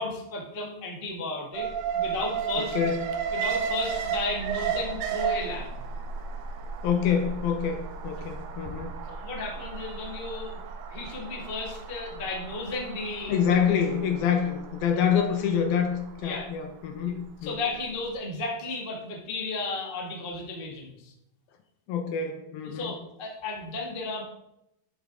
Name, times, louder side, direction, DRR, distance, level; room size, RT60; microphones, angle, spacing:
voice 1, 0.0-3.0 3.3-5.7 9.1-10.6 10.9-13.5 16.2-16.5 17.0-17.1 17.4-21.1 22.6-24.2, left 2 dB, 40° left, -1 dB, 0.7 m, -34 dB
Alarm, 1.5-17.6 18.0-18.1, right 6 dB, 80° right, 1.7 m, -34 dB
voice 2, 2.6-3.0 6.8-9.0 13.3-17.6 21.9-22.9, left 7 dB, 70° left, 5 dB, 2.5 m, -26 dB
12.0 x 7.3 x 3.7 m, 0.83 s
omnidirectional pair, 4.8 m